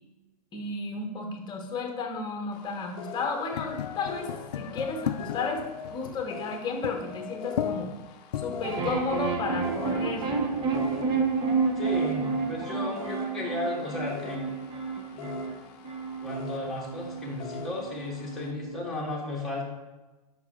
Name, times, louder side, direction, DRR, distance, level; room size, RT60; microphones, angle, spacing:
voice 1, 0.5-5.6 5.9-7.9 8.4-10.4, left 4 dB, 20° left, 3 dB, 1.1 m, -33 dB
sound 1, 2.5-18.5, left 5 dB, 35° left, 0.7 m, -45 dB
sound 2, 3.5-9.8, left 9 dB, 75° left, 0.4 m, -36 dB
sound 3, 8.6-18.9, right 4 dB, 25° right, 0.8 m, -30 dB
voice 2, 11.7-14.4 15.1-15.3 16.2-19.7, left 2 dB, ahead, -5 dB, 1.8 m, -34 dB
5.5 x 4.8 x 3.8 m, 1.1 s
hypercardioid pair, 120°, 21 cm